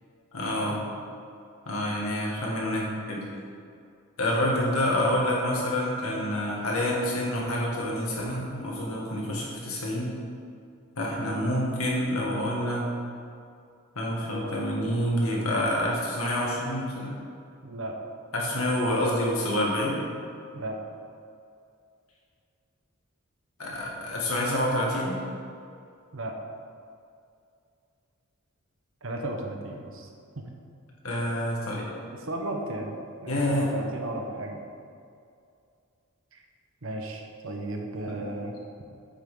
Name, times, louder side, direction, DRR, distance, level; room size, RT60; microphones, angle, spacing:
voice 1, 0.3-0.8 1.7-3.2 4.2-10.1 11.0-12.9 14.0-17.2 18.3-20.0 23.6-25.2 31.0-31.9 33.3-33.7, left 1 dB, 85° left, -4 dB, 2.1 m, -27 dB
voice 2, 14.2-14.6 17.6-18.0 20.5-20.8 26.1-26.4 29.0-30.1 30.4-30.5 32.2-34.6 36.3-36.4 36.8-38.6, right 1 dB, 65° right, 2 dB, 1.1 m, -35 dB
8.9 x 7.0 x 3.9 m, 2.4 s
head